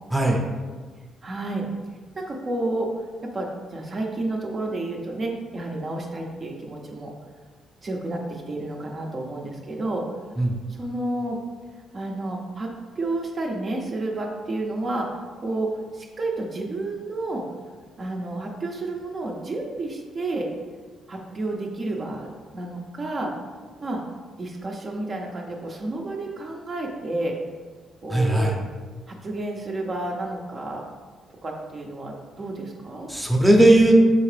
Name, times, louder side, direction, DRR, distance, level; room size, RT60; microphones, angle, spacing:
voice 1, 1.2-1.7 2.1-7.1 7.8-10.2 10.7-11.4 11.9-12.7 13.0-17.5 18.0-20.5 21.1-23.3 23.8-24.0 24.4-27.4 28.0-28.6 29.1-30.8 31.4-33.1, right 2 dB, 40° right, 0 dB, 0.6 m, -30 dB
voice 2, 28.1-28.5 33.1-34.0, right 1 dB, 5° right, -1 dB, 0.7 m, -17 dB
4.1 x 3.6 x 3.3 m, 1.4 s
cardioid pair, 90°, 0 cm